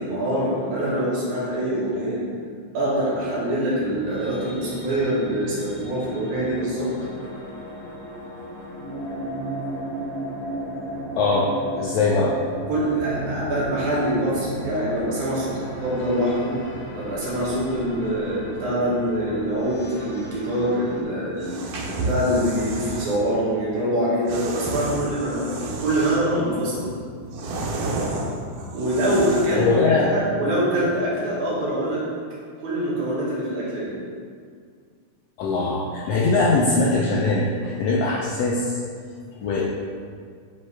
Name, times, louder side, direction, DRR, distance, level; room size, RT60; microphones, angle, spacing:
voice 1, 0.0-2.2 2.7-6.9 12.7-16.5 16.9-26.9 28.7-29.7 30.0-32.0 32.6-33.9, right 1 dB, 70° right, -8 dB, 3.0 m, -24 dB
sound 1, 3.7-21.0, right 1 dB, 65° left, 2.3 m, -35 dB
voice 2, 11.1-12.4 29.6-30.1 35.4-38.8 39.4-39.6, left 3 dB, 90° left, -4 dB, 1.4 m, -21 dB
sound 2, 21.3-23.2 24.3-26.4 26.8-29.7, right 2 dB, 90° right, 2.4 m, -31 dB
9.7 x 3.5 x 3.3 m, 2.1 s
omnidirectional pair, 3.6 m